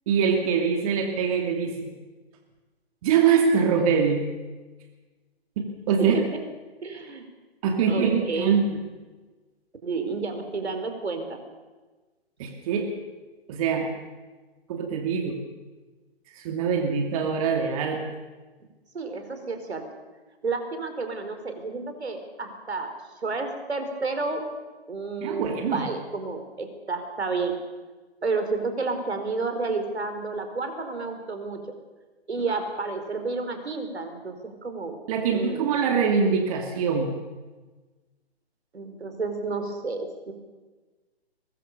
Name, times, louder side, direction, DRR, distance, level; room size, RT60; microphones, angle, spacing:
voice 1, 0.1-1.9 3.0-4.2 5.6-6.2 7.6-8.8 12.4-12.9 13.5-13.9 14.7-15.4 16.3-18.0 25.2-25.9 35.1-37.1, right 6 dB, 35° right, 3 dB, 2.7 m, -23 dB
voice 2, 6.8-7.2 7.9-8.6 9.8-11.4 18.9-19.8 20.4-22.9 23.2-24.4 24.9-27.5 28.2-31.6 32.3-35.0 35.3-35.7 38.7-40.3, right 3 dB, 75° right, 6 dB, 4.8 m, -31 dB
22.5 x 21.5 x 6.9 m, 1.3 s
figure-of-eight pair, 140°, 33 cm